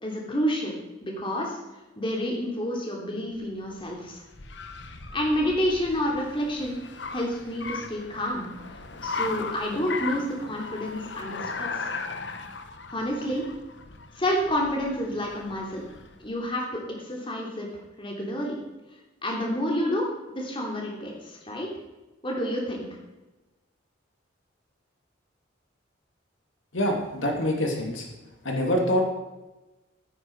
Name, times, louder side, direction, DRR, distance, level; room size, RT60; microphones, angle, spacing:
voice 1, 0.0-0.7 1.0-1.6 2.0-4.2 5.1-6.8 7.1-8.5 9.0-11.7 12.9-13.4 14.1-15.8 16.2-17.7 18.0-18.6 19.2-20.1 20.3-21.7 22.2-22.9, equal, 25° left, -1 dB, 3.1 m, -29 dB
Car, 3.3-16.3, left 4 dB, 60° left, 1.1 m, -37 dB
voice 2, 26.7-28.1 28.4-29.0, equal, 80° left, 1 dB, 2.7 m, -25 dB
15.5 x 9.9 x 4.8 m, 1.1 s
head